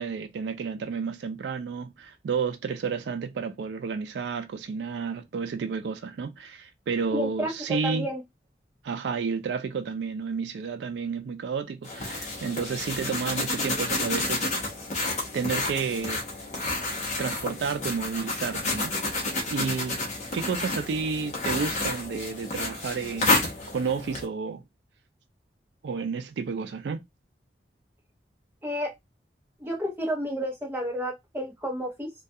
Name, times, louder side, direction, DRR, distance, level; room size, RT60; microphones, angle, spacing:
voice 1, 0.0-8.1 8.8-14.6 15.3-16.2 17.2-19.2 19.5-20.0 20.3-24.6 25.8-27.0, right 5 dB, 85° right, 0.3 m, -31 dB
voice 2, 7.1-8.2 28.6-28.9 29.6-32.1, equal, 10° right, 0.7 m, -31 dB
sound 1, 11.8-24.3, left 2 dB, 40° left, 0.7 m, -30 dB
2.3 x 2.2 x 2.6 m
head